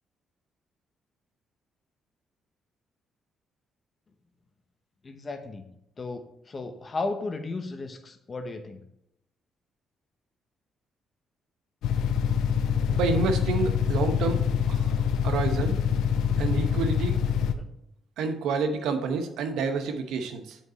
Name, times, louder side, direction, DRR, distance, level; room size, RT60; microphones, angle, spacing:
voice 1, 5.0-5.7 6.0-8.8 17.5-17.7, left 3 dB, 35° left, 6 dB, 1.1 m, -35 dB
sound 1, 11.8-17.5, left 7 dB, 85° left, 0.6 m, -25 dB
voice 2, 12.9-14.4 14.7-14.9 15.2-15.7 16.4-17.2 18.2-20.6, right 4 dB, 85° right, 7 dB, 0.9 m, -28 dB
7.8 x 5.1 x 4.2 m, 0.80 s
cardioid pair, 90°, 0 cm